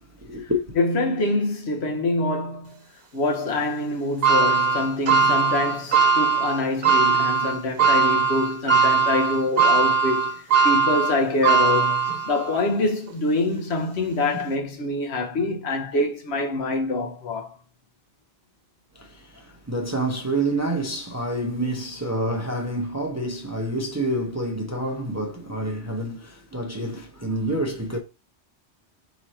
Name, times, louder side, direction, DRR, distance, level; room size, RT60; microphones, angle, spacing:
voice 1, 0.0-0.8 19.0-28.0, right 1 dB, 20° right, 0.6 m, -28 dB
voice 2, 0.8-2.8 3.1-17.6, left 2 dB, 70° left, 1.2 m, -25 dB
sound 1, 4.2-12.6 13.1-13.2 14.3-14.4, right 5 dB, 55° right, 1.1 m, -20 dB
4.0 x 3.1 x 4.2 m
omnidirectional pair, 1.2 m